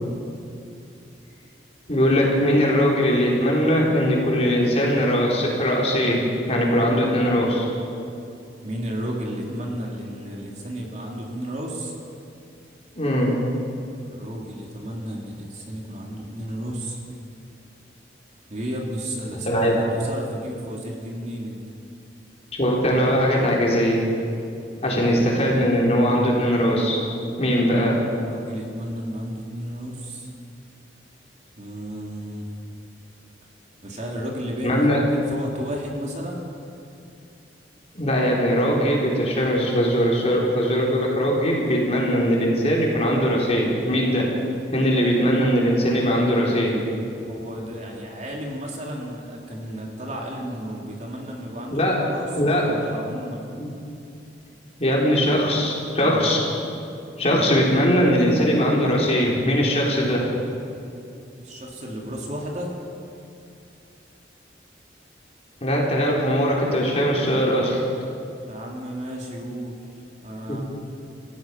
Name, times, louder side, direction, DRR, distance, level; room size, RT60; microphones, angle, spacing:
voice 1, 1.9-7.7 12.9-13.3 19.5-19.7 22.6-24.1 24.8-27.0 27.4-28.0 34.6-35.0 37.9-44.3 44.7-46.8 51.7-52.0 52.3-52.6 54.8-56.5 57.2-60.2 65.6-67.8 70.5-70.6, equal, 35° left, -3 dB, 4.2 m, -20 dB
voice 2, 8.6-11.9 14.1-17.0 18.5-21.6 24.7-25.2 28.2-30.3 31.6-32.5 33.8-36.4 47.3-52.3 52.6-53.5 61.4-62.7 68.4-69.8 70.2-70.6, equal, 40° right, -1 dB, 3.1 m, -33 dB
29.0 x 15.5 x 6.0 m, 2.6 s
head